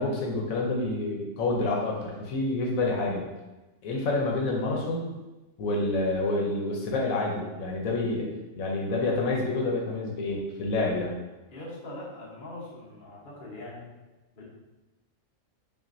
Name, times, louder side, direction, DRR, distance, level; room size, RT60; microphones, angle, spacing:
voice 1, 0.0-3.3 3.8-5.1 5.6-8.3 8.6-11.1, left 2 dB, 85° left, -1 dB, 1.1 m, -28 dB
voice 2, 11.5-13.9 14.4-14.5, left 1 dB, 40° left, -5 dB, 1.1 m, -41 dB
5.7 x 2.4 x 2.6 m, 1.1 s
omnidirectional pair, 1.4 m